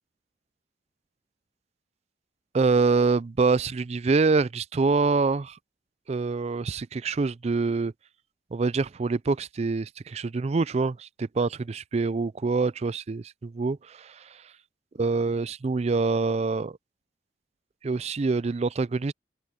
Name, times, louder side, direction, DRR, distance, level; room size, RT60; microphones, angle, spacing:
voice 1, 2.5-5.6 6.1-7.9 8.5-14.4 15.0-16.8 17.8-19.1, right 4 dB, 35° right, 0.4 m, -25 dB
open air
head